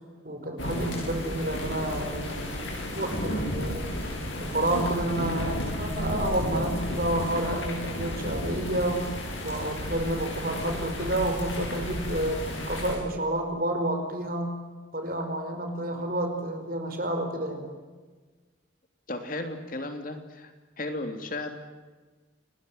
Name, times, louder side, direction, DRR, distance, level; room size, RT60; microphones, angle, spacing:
voice 1, 0.2-3.9 4.4-9.1 9.4-12.4 12.7-14.5 14.9-17.7, right 1 dB, 45° right, 5 dB, 5.2 m, -30 dB
sound 1, 0.6-13.0, left 1 dB, 80° left, 7.6 m, -33 dB
voice 2, 19.1-20.5 20.8-21.5, left 2 dB, 45° left, 6 dB, 3.1 m, -34 dB
29.5 x 19.0 x 9.4 m, 1.4 s
head